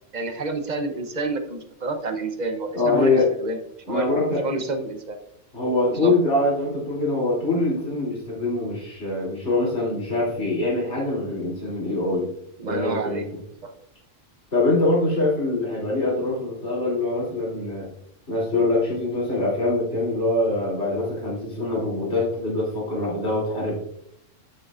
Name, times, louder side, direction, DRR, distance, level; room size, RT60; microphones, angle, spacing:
voice 1, 0.1-3.6 3.9-5.2 5.9-6.1 12.6-13.2 13.6-13.7, right 3 dB, 40° right, 7 dB, 0.8 m, -29 dB
voice 2, 2.7-3.3 3.9-4.4 5.5-12.3 12.6-13.2 14.5-17.9 18.3-23.7, left 2 dB, 60° left, -5 dB, 3.4 m, -24 dB
9.2 x 7.5 x 2.5 m, 0.72 s
omnidirectional pair, 1.3 m